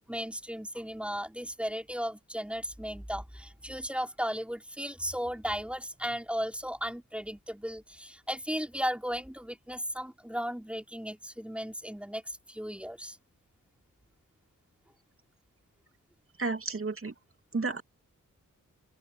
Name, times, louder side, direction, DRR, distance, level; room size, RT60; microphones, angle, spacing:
voice 1, 0.1-13.2, equal, 5° right, 5.2 m, -35 dB
voice 2, 16.4-17.1 17.5-17.8, right 3 dB, 40° right, 2.7 m, -31 dB
open air
cardioid pair, 65°, 32 cm